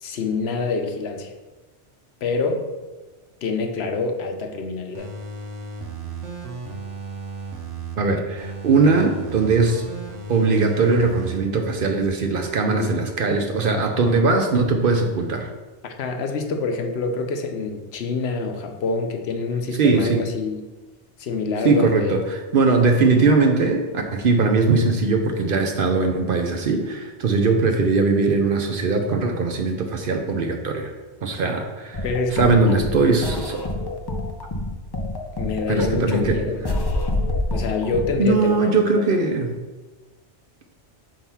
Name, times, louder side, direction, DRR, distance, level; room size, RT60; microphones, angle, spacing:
voice 1, 0.0-1.3 2.2-2.7 3.4-5.1 12.6-13.0 15.8-20.7 21.2-22.1 32.0-32.9 35.4-36.8 37.5-39.1, left 4 dB, 70° left, 5 dB, 0.8 m, -26 dB
sound 1, 4.9-8.0 8.4-11.4 11.8-11.9, right 4 dB, 90° right, 1.1 m, -34 dB
voice 2, 8.0-9.8 10.3-15.5 19.8-20.2 21.6-30.9 31.2-32.0 32.3-33.6 35.7-36.4 38.2-39.5, right 4 dB, 60° right, 4 dB, 0.7 m, -20 dB
sound 2, 31.9-38.2, left 1 dB, 35° left, 0.4 m, -27 dB
4.5 x 3.8 x 5.5 m, 1.2 s
omnidirectional pair, 1.2 m